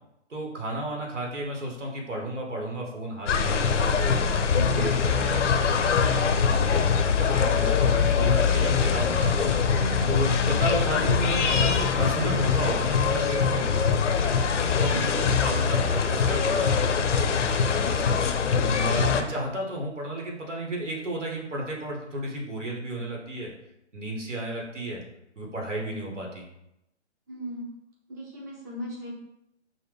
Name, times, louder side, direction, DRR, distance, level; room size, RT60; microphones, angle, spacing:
voice 1, 0.3-4.2 4.7-9.6 10.1-14.2 14.8-18.2 18.6-23.5 23.9-25.0 25.4-26.4, right 1 dB, 85° right, 0 dB, 1.3 m, -33 dB
sound 1, 3.3-19.2, left 6 dB, 75° left, 0.6 m, -23 dB
voice 2, 4.5-4.9 14.8-15.1 18.8-18.9 27.3-27.7 28.1-29.1, right 1 dB, 15° right, -3 dB, 0.4 m, -37 dB
5.5 x 2.1 x 3.3 m, 0.85 s
figure-of-eight pair, 140°, 36 cm